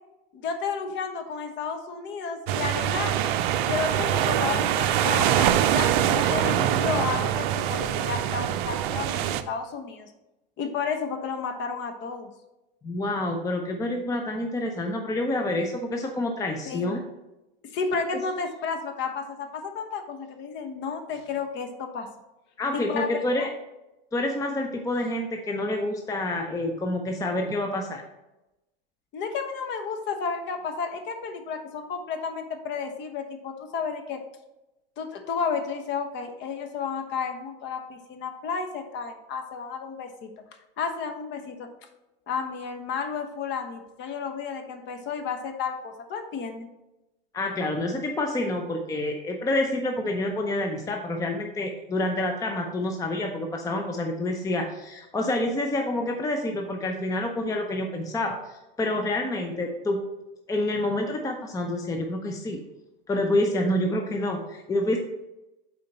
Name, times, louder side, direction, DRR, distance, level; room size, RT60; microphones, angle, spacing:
voice 1, 0.3-3.3 3.6-10.1 10.6-12.3 16.7-16.9 17.7-22.1 22.7-23.5 29.1-34.2 35.0-40.3 40.8-41.7 42.3-46.7, left 5 dB, 40° left, 6 dB, 1.1 m, -32 dB
sound 1, 2.5-9.4, right 11 dB, 55° right, 0.6 m, -24 dB
voice 2, 12.8-17.0 18.1-18.2 22.6-23.5 24.1-28.0 47.3-60.0 60.5-62.6 63.1-65.0, left 1 dB, 10° left, 3 dB, 0.6 m, -28 dB
7.6 x 4.4 x 4.2 m, 0.97 s
hypercardioid pair, 105°, 30 cm